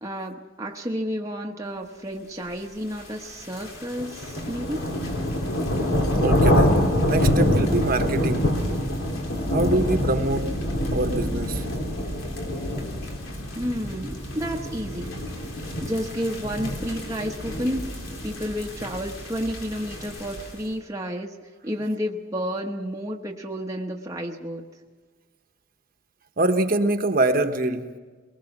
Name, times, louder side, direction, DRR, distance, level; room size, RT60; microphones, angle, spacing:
voice 1, 0.0-4.9 13.6-15.1 15.8-17.9 18.2-24.7, equal, 15° right, 1 dB, 1.0 m, -31 dB
sound 1, 3.1-20.6, equal, 85° left, 3.7 m, -26 dB
voice 2, 6.2-8.5 9.5-10.5 10.9-11.6 26.4-27.9, right 2 dB, 45° right, 7 dB, 1.1 m, -24 dB
23.0 x 20.0 x 6.0 m, 1.4 s
head